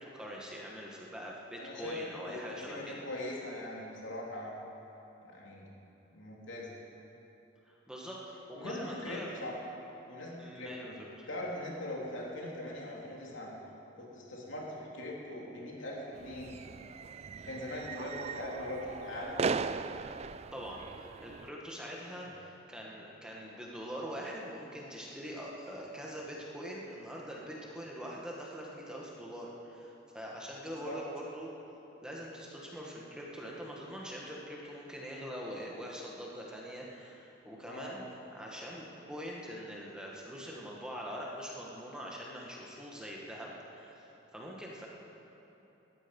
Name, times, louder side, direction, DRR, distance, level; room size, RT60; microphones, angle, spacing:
voice 1, 0.0-3.0 7.7-9.3 10.4-10.9 11.2-11.3 20.5-31.5 32.0-44.0 44.3-44.9, equal, 5° right, -3 dB, 1.8 m, -43 dB
voice 2, 1.6-4.5 5.2-5.7 6.1-6.7 8.5-9.5 10.1-11.0 11.3-13.5 14.0-16.5 17.4-19.4 30.8-31.0 37.7-38.0, left 1 dB, 80° left, -3 dB, 3.3 m, -41 dB
sound 1, 16.2-21.5, right 5 dB, 35° right, 0.3 m, -38 dB
18.5 x 13.0 x 5.5 m, 3.0 s
head